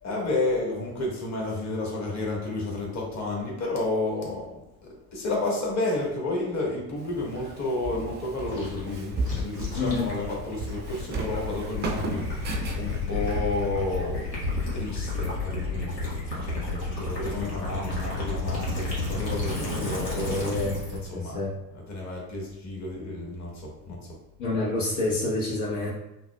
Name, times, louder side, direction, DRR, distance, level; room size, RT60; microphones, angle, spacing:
voice 1, 0.0-4.5 4.8-14.3 14.7-20.4 21.0-21.4 21.7-24.2, left 2 dB, 35° left, -2 dB, 1.4 m, -31 dB
Walk footsteps, 7.0-15.1, right 3 dB, 20° right, 0.5 m, -36 dB
Gurgling / Liquid, 8.5-21.1, left 2 dB, 85° left, 1.3 m, -31 dB
voice 2, 9.7-10.1 20.1-21.5 24.4-25.9, left 2 dB, 60° left, -5 dB, 1.0 m, -28 dB
5.6 x 2.0 x 2.2 m, 0.89 s
hypercardioid pair, 70°, 48 cm